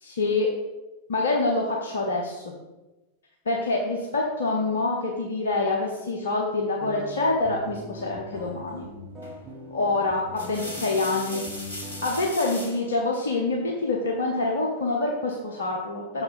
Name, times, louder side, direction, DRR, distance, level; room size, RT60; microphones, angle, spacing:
voice 1, 0.0-0.5 1.1-2.5 3.5-8.9 9.7-11.4 12.0-16.2, left 2 dB, 65° left, -1 dB, 0.9 m, -26 dB
sound 1, 6.8-12.1, equal, 15° right, 2.0 m, -41 dB
sound 2, 9.2-9.5 10.1-12.8 14.3-15.0, left 1 dB, 85° right, 1.7 m, -38 dB
6.7 x 4.8 x 5.1 m, 1.1 s
figure-of-eight pair, 90°, 0 cm